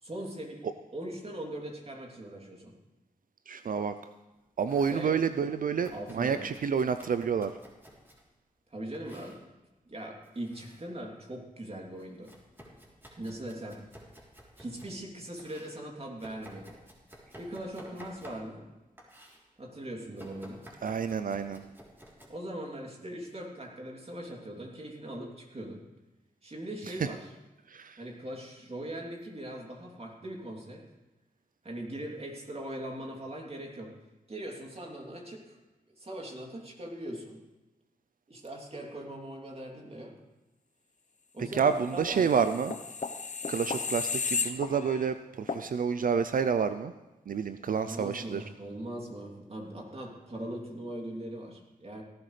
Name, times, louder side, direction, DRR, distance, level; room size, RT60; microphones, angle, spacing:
voice 1, 0.0-2.7 4.9-5.2 5.9-6.5 8.7-9.4 9.9-12.3 13.2-13.8 14.6-16.8 17.4-18.7 19.6-20.6 22.3-25.8 26.4-27.3 28.0-30.8 31.6-33.9 34.3-35.6 35.9-37.4 38.3-40.2 41.3-42.4 47.7-52.0, right 1 dB, 40° right, 0 dB, 3.1 m, -40 dB
voice 2, 3.5-4.0 4.6-7.5 20.8-21.6 27.7-28.0 41.5-42.8 43.5-46.9 47.3-48.4, right 6 dB, 60° right, 11 dB, 0.5 m, -29 dB
Domestic sounds home sounds, 4.3-5.1 5.8-8.3 8.9-9.4 10.2-10.9 11.2-15.0 15.4-18.7 19.0-19.4 20.2-22.3, equal, 15° right, 3.5 m, -53 dB
sound 1, 42.2-45.1 45.5-45.6, left 5 dB, 50° left, 0.9 m, -33 dB
17.5 x 12.0 x 3.3 m, 1.0 s
cardioid pair, 45°, 16 cm